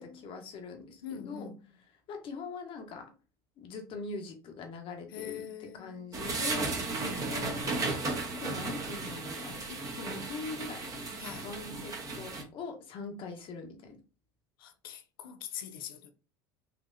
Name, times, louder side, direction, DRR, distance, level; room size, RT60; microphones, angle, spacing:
voice 1, 0.0-1.5 2.1-3.1 3.6-5.4 5.7-6.7 7.1-10.9 11.4-14.0, left 4 dB, 50° left, 1.2 m, -42 dB
voice 2, 1.0-1.6 5.1-6.1 7.0-7.7 11.2-11.5 14.6-16.1, left 8 dB, 85° left, 0.6 m, -43 dB
sound 1, 6.1-12.4, right 3 dB, 30° right, 1.1 m, -35 dB
4.3 x 2.7 x 2.6 m
hypercardioid pair, 90°, 11 cm